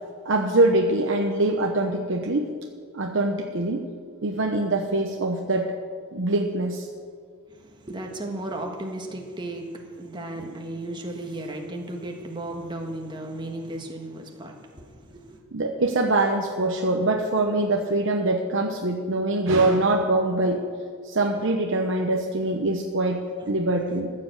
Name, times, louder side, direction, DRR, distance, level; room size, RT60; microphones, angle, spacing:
voice 1, 0.2-2.5 2.9-3.9 4.2-5.7 6.1-6.9 10.4-10.5 15.5-20.7 21.0-24.1, right 2 dB, 60° right, 2 dB, 0.9 m, -23 dB
voice 2, 7.5-15.4 23.5-23.6, right 1 dB, 20° right, 2 dB, 1.4 m, -35 dB
14.5 x 7.8 x 7.9 m, 2.1 s
head